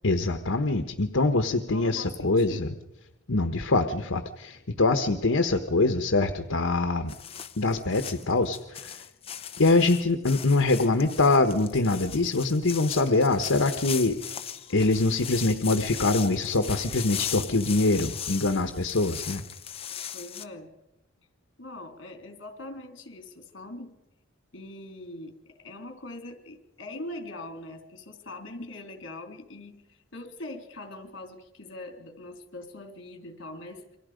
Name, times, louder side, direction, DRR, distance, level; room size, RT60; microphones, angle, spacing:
voice 1, 0.0-2.7 3.3-7.1 7.6-9.0 9.6-14.2 14.7-19.4, left 2 dB, 80° left, 7 dB, 1.2 m, -24 dB
voice 2, 1.7-2.8 20.1-20.7 21.6-24.0 24.5-34.0, left 1 dB, 65° left, 5 dB, 3.8 m, -42 dB
sound 1, 7.1-20.4, left 9 dB, 30° left, 0.9 m, -38 dB
28.5 x 24.0 x 5.2 m, 0.93 s
head